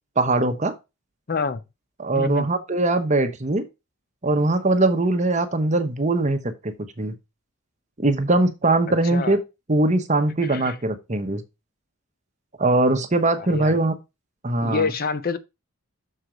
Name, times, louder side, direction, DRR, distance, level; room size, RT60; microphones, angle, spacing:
voice 1, 0.2-0.7 2.0-3.7 4.2-7.1 8.0-9.4 9.7-11.4 12.6-13.9 14.4-14.9, right 2 dB, 30° right, 1.0 m, -21 dB
voice 2, 1.3-1.6 2.1-2.5 9.1-9.4 10.4-10.8 13.4-13.8 14.6-15.4, left 4 dB, 40° left, 0.5 m, -27 dB
6.6 x 4.5 x 5.0 m
head